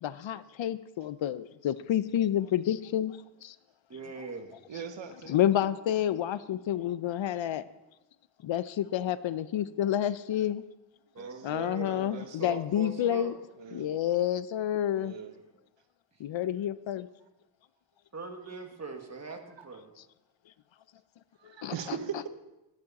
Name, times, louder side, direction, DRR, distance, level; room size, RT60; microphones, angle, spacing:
voice 1, 0.0-3.1 3.4-3.5 5.3-7.7 8.4-10.6 11.4-13.3 13.7-15.1 16.2-17.1 21.6-21.7, left 11 dB, 70° left, 16 dB, 0.6 m, -29 dB
voice 2, 3.9-4.6 11.1-13.4 18.1-19.9, right 4 dB, 35° right, 4 dB, 1.6 m, -41 dB
voice 3, 4.7-5.4 11.2-12.6 13.5-13.9 14.9-15.3 19.3-19.7 21.4-22.3, right 7 dB, 65° right, 9 dB, 1.1 m, -41 dB
12.0 x 10.5 x 4.1 m, 0.98 s
wide cardioid pair, 90°, 47 cm